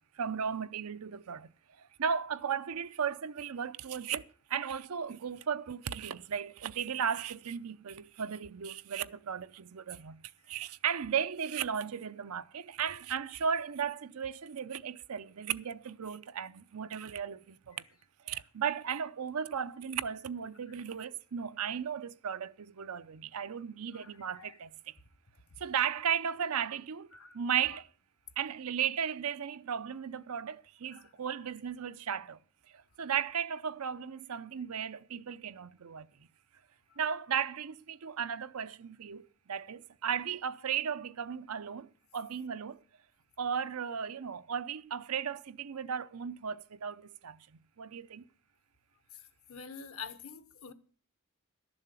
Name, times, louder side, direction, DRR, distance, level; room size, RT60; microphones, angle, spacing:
voice 1, 0.0-1.5 1.8-4.2 4.5-17.8 18.3-24.9 25.6-27.1 27.3-27.9 28.4-32.4 32.7-36.1 37.0-42.8 43.4-48.2, right 7 dB, 90° right, 0.6 m, -35 dB
voice 2, 23.9-24.6 27.1-27.4 27.7-27.8 30.9-31.1 36.9-37.0 49.1-50.7, left 6 dB, 70° left, 1.1 m, -47 dB
12.0 x 7.1 x 8.2 m
head